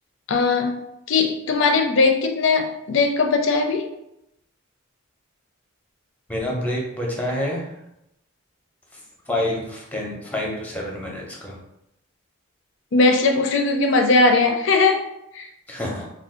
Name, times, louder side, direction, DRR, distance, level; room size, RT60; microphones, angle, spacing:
voice 1, 0.3-0.7 1.1-3.9 12.9-15.0 15.3-15.5, left 3 dB, 60° left, 4 dB, 0.4 m, -19 dB
voice 2, 6.3-7.8 8.9-9.0 9.3-11.6 15.7-16.0, left 1 dB, 5° left, -2 dB, 0.5 m, -27 dB
2.5 x 2.2 x 3.6 m, 0.84 s
head